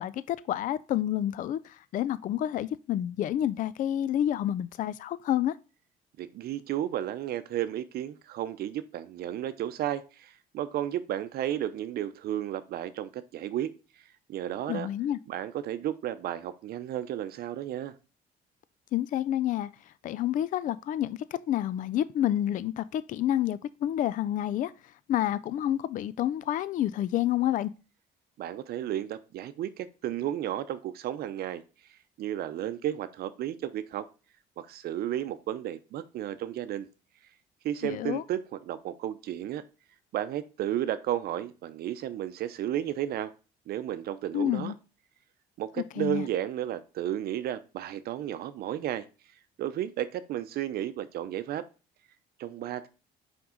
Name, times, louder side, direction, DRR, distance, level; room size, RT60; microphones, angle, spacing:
voice 1, 0.0-5.6 14.7-15.2 18.9-24.7 25.1-27.7 37.8-38.2 44.3-44.8 46.0-46.2, left 12 dB, 50° left, 0.4 m, -29 dB
voice 2, 6.2-13.7 14.3-14.9 15.3-17.9 28.4-31.6 32.2-34.0 34.6-36.9 37.6-39.6 40.1-43.3 43.7-44.7 45.6-49.1 49.6-51.6 52.4-52.9, right 11 dB, 65° right, 0.7 m, -33 dB
5.9 x 5.3 x 3.8 m
cardioid pair, 110°, 17 cm